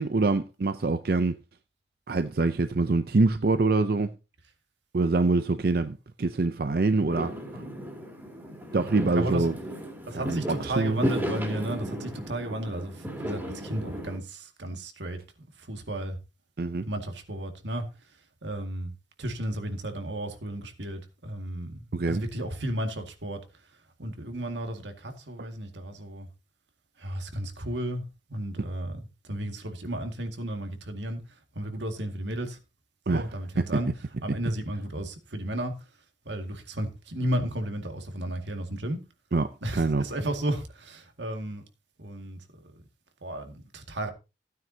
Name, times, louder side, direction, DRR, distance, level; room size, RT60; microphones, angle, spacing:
voice 1, 0.0-1.3 2.1-4.1 4.9-7.3 8.7-9.5 10.1-11.1 16.6-16.9 21.9-22.2 33.1-33.2 39.3-40.0, right 3 dB, 55° right, 0.5 m, -25 dB
Fireworks, 7.1-14.2, equal, 10° right, 2.6 m, -35 dB
voice 2, 9.1-9.5 10.1-15.2 15.6-16.2 16.9-17.9 18.4-18.9 19.2-23.4 24.0-26.3 27.0-28.0 28.3-32.6 33.1-33.9 34.2-35.7 36.3-39.0 39.6-41.6 42.0-42.7 43.2-44.1, right 1 dB, 90° right, 2.1 m, -33 dB
15.5 x 9.4 x 2.8 m
head